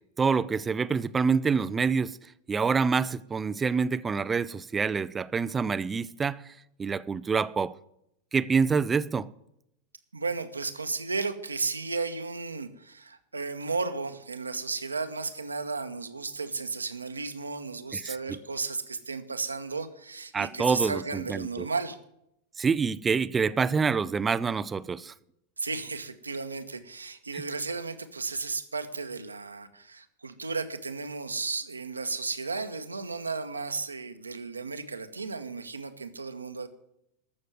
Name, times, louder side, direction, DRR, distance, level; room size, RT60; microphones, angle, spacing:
voice 1, 0.2-2.2 2.5-6.4 6.8-7.7 8.3-9.3 18.0-18.4 20.3-21.0 21.3-21.7 22.6-25.1, right 5 dB, 15° right, 0.5 m, -26 dB
voice 2, 10.1-22.0 25.6-36.7, right 4 dB, 80° right, 1.2 m, -34 dB
14.5 x 6.6 x 9.3 m
figure-of-eight pair, 90°, 0 cm